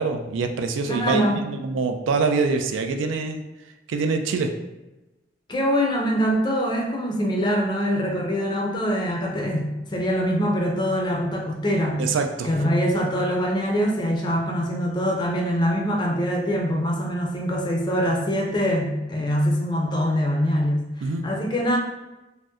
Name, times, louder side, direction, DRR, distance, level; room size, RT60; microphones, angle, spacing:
voice 1, 0.0-3.4 3.9-4.5 12.0-12.5 21.0-21.2, right 4 dB, 85° right, 6 dB, 0.3 m, -25 dB
voice 2, 0.9-1.5 5.5-12.0 12.4-21.8, equal, 25° left, 0 dB, 0.4 m, -24 dB
2.6 x 2.1 x 3.5 m, 1.0 s
head